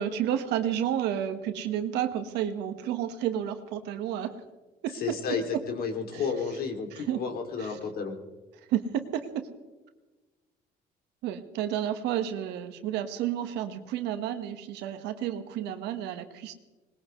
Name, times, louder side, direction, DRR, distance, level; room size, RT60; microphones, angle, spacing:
voice 1, 0.0-4.3 4.8-5.0 5.5-5.6 6.1-6.2 6.9-7.2 7.6-7.7 8.7-9.5 11.2-16.5, right 10 dB, 90° right, 8 dB, 1.4 m, -31 dB
voice 2, 4.9-8.2, left 5 dB, 60° left, 4 dB, 2.8 m, -32 dB
20.5 x 20.0 x 3.2 m, 1.2 s
cardioid pair, 110°, 17 cm